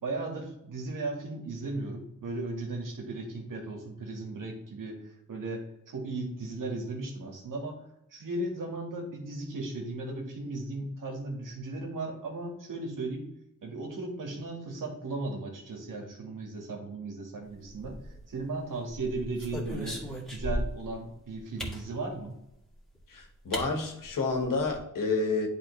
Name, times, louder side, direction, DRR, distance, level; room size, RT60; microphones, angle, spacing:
voice 1, 0.0-5.0 5.3-7.8 8.1-13.3 13.6-18.0 18.3-22.4, right 2 dB, 80° right, 1 dB, 1.8 m, -36 dB
sound 1, 17.7-18.4 18.9-20.9 21.6-21.8 22.9-23.0 23.5-23.7 24.0-24.1 24.4-24.8, equal, ahead, 1.9 m, -36 dB
voice 2, 23.1-25.5, left 3 dB, 85° left, 2 dB, 1.6 m, -29 dB
10.5 x 4.0 x 3.2 m, 0.82 s
wide cardioid pair, 115°, 32 cm